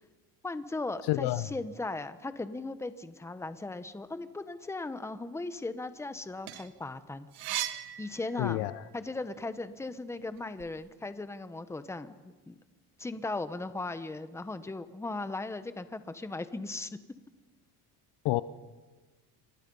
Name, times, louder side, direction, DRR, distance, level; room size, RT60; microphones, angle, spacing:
voice 1, 0.4-7.6 8.0-8.7 8.9-12.6 13.0-16.9, left 2 dB, 5° left, 1.0 m, -38 dB
voice 2, 1.1-1.5 8.4-8.8 18.2-18.4, left 17 dB, 85° left, 0.9 m, -28 dB
sound 1, 6.2-8.9 9.3-10.7, right 14 dB, 75° right, 1.8 m, -39 dB
29.0 x 25.0 x 5.5 m
cardioid pair, 165°, 40 cm